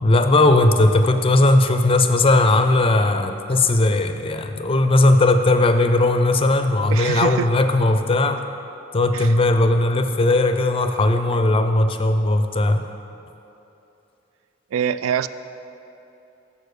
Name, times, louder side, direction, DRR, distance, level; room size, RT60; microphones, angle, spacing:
voice 1, 0.0-8.4 8.9-12.8, left 2 dB, 30° left, 7 dB, 0.4 m, -18 dB
voice 2, 6.9-7.5 9.1-9.3 14.7-15.3, right 8 dB, 85° right, 14 dB, 0.3 m, -24 dB
7.0 x 6.7 x 6.5 m, 2.9 s
head